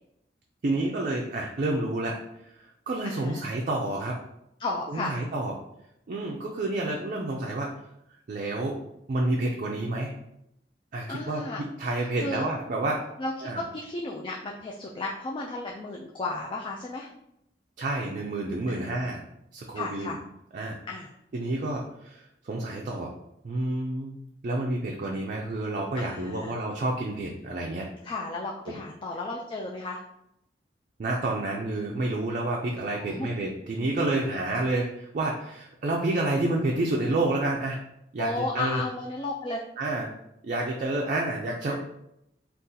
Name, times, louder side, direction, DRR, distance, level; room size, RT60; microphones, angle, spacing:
voice 1, 0.6-2.2 2.9-4.2 4.9-5.5 6.1-7.7 8.3-8.8 9.1-10.2 10.9-11.4 11.8-13.1 13.4-13.6 17.8-19.2 19.5-20.1 20.5-20.8 21.3-23.1 23.4-27.9 28.7-28.8 31.0-37.8 38.1-38.8 39.8-40.1 40.4-41.7, right 2 dB, 45° right, -1 dB, 0.4 m, -29 dB
voice 2, 3.0-3.4 4.6-5.1 11.1-11.6 12.2-12.4 13.2-17.1 18.7-18.9 19.7-20.2 20.9-21.1 25.9-26.6 28.0-30.0 33.0-33.3 38.2-39.6 41.7-41.8, left 2 dB, 30° left, -1 dB, 0.3 m, -33 dB
2.7 x 2.4 x 3.7 m, 0.81 s
head